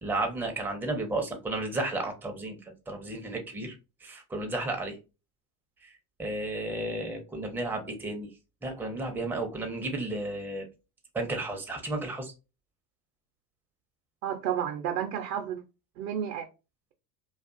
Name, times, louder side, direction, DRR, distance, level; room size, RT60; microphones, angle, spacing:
voice 1, 0.0-5.0 5.8-5.9 6.2-8.3 8.6-10.7 11.1-12.3, right 2 dB, 5° right, 0.5 m, -33 dB
voice 2, 14.2-15.6 16.0-16.5, right 9 dB, 70° right, 0.6 m, -31 dB
2.4 x 2.3 x 2.5 m
hypercardioid pair, 90°, 49 cm